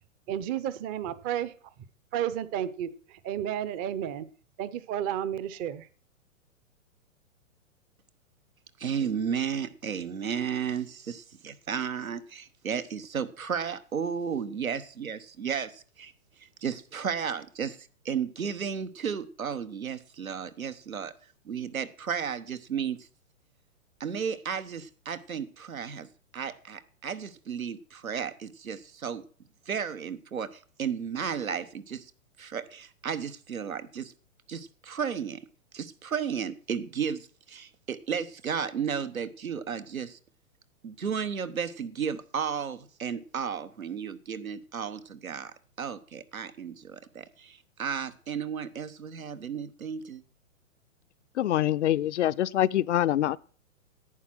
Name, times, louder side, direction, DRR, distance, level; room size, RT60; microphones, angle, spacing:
voice 1, 0.3-1.5 2.1-2.9 3.2-4.3 4.6-5.9, right 10 dB, 20° right, 0.6 m, -31 dB
voice 2, 8.8-16.1 16.4-21.1 21.4-23.0 24.0-26.1 26.3-29.2 29.7-32.1 32.4-34.1 34.5-35.4 35.7-40.2 40.8-50.2, right 7 dB, 85° right, 1.3 m, -33 dB
voice 3, 51.4-53.4, left 12 dB, 60° left, 0.6 m, -25 dB
11.0 x 8.8 x 6.1 m
hypercardioid pair, 120°, 41 cm